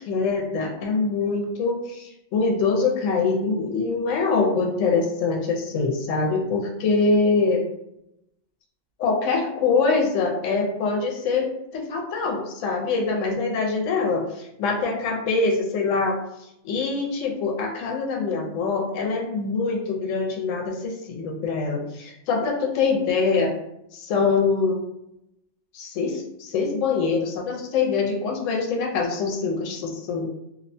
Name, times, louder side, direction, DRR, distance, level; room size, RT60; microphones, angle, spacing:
voice 1, 0.0-7.7 9.0-16.2 16.6-23.5 23.9-24.8 25.7-30.3, left 4 dB, 80° left, 1 dB, 0.9 m, -24 dB
2.6 x 2.1 x 2.6 m, 0.82 s
omnidirectional pair, 1.3 m